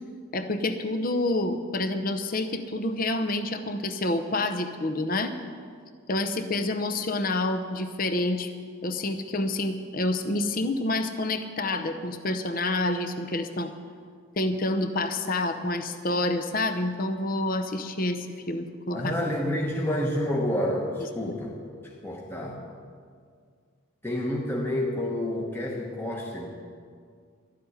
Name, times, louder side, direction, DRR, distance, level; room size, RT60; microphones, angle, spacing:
voice 1, 0.3-5.3 6.1-8.5 8.8-13.7 14.4-19.2, left 2 dB, 45° left, 8 dB, 0.7 m, -28 dB
voice 2, 18.9-21.5 21.8-22.6 24.0-26.5, left 1 dB, 10° left, -2 dB, 1.0 m, -29 dB
12.0 x 7.6 x 9.9 m, 2.1 s
head